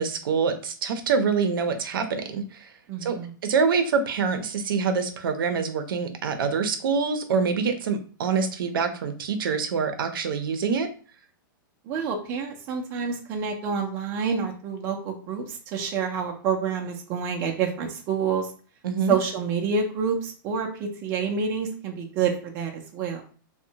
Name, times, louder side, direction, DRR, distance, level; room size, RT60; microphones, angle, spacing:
voice 1, 0.0-2.6 3.0-10.9 18.8-19.1, right 5 dB, 85° right, 7 dB, 0.5 m, -25 dB
voice 2, 2.9-3.3 11.9-18.5 19.1-23.2, right 6 dB, 20° right, 1 dB, 0.4 m, -28 dB
2.7 x 2.1 x 2.7 m, 0.42 s
supercardioid pair, 170°, 11 cm